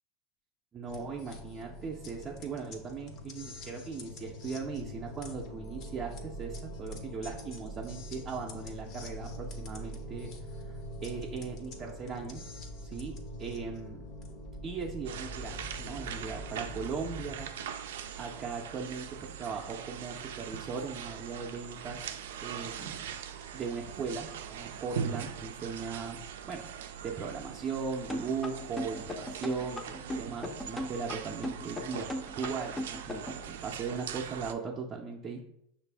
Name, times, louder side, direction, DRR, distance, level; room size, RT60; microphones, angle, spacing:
voice 1, 0.7-10.3 10.7-12.4 12.8-13.1 13.4-14.1 14.6-17.5 18.2-22.9 23.5-26.7 27.0-35.4, right 5 dB, 30° right, -1 dB, 0.5 m, -38 dB
sound 1, 0.9-17.4, equal, 50° left, 0.8 m, -43 dB
sound 2, 15.0-34.5, right 8 dB, 85° right, 0.3 m, -41 dB
sound 3, 28.1-33.4, left 1 dB, 15° left, 0.5 m, -37 dB
5.8 x 2.5 x 3.4 m, 0.77 s
supercardioid pair, 120°, 0 cm